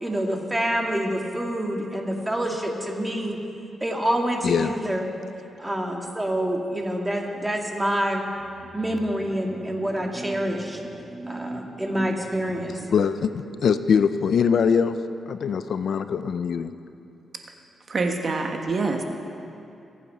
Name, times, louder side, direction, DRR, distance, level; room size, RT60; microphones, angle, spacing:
voice 1, 0.0-3.4 3.8-5.1 5.6-8.2 8.7-12.9, right 1 dB, 10° right, 1 dB, 1.9 m, -27 dB
voice 2, 12.9-13.3 13.6-15.0 15.3-16.7, left 6 dB, 65° left, 11 dB, 0.5 m, -22 dB
voice 3, 17.9-19.0, right 3 dB, 45° right, 3 dB, 1.4 m, -25 dB
22.5 x 8.3 x 5.5 m, 2.7 s
cardioid pair, 95°, 0 cm